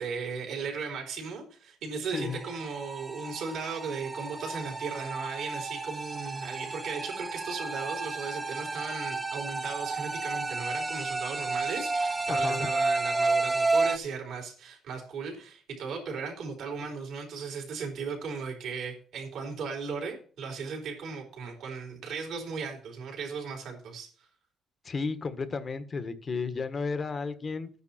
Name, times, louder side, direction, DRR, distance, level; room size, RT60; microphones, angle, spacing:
voice 1, 0.0-24.1, right 5 dB, 75° right, 1 dB, 4.1 m, -37 dB
sound 1, 2.1-14.0, right 3 dB, 25° right, 1.0 m, -31 dB
voice 2, 12.3-12.7 24.8-27.7, left 4 dB, 40° left, 11 dB, 1.5 m, -33 dB
13.0 x 9.7 x 4.4 m, 0.43 s
cardioid pair, 90°, 0 cm